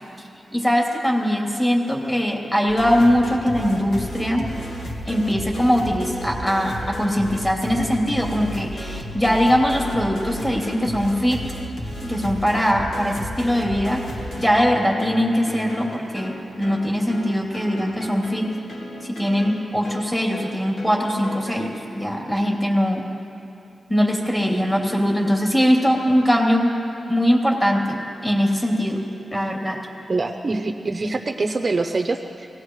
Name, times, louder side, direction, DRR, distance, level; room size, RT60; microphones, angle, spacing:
voice 1, 0.5-4.5 5.1-11.4 12.0-14.0 14.4-18.5 19.0-23.0 23.9-26.8 27.1-29.0 29.3-29.8, equal, 15° left, -2 dB, 3.1 m, -21 dB
sound 1, 2.7-21.6, equal, 70° left, 1.9 m, -34 dB
voice 2, 30.1-32.5, right 3 dB, 40° right, 5 dB, 0.7 m, -24 dB
24.5 x 18.0 x 3.2 m, 2.7 s
cardioid pair, 85°, 0 cm